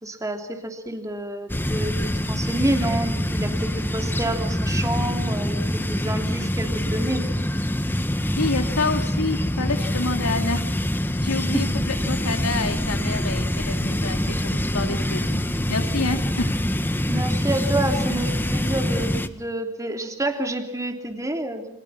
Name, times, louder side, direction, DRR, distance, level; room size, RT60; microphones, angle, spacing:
voice 1, 0.0-7.3 11.5-11.6 17.1-21.8, right 1 dB, 15° right, 4 dB, 3.3 m, -29 dB
sound 1, 1.5-19.3, equal, 10° left, 1.3 m, -25 dB
voice 2, 8.4-10.7 11.2-15.4 15.7-16.5, left 3 dB, 80° left, 5 dB, 2.7 m, -28 dB
29.5 x 27.0 x 5.9 m, 0.77 s
head